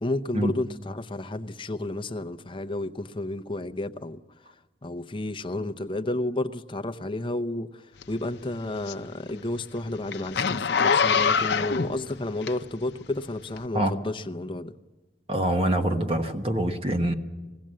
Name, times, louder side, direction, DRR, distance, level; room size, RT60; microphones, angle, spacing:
voice 1, 0.0-4.2 4.8-14.7, left 2 dB, 30° left, 0.7 m, -31 dB
Zipper (clothing), 8.0-13.0 13.5-13.6, left 6 dB, 75° left, 0.7 m, -25 dB
voice 2, 15.3-17.1, right 1 dB, 30° right, 1.2 m, -25 dB
21.0 x 16.5 x 7.6 m
head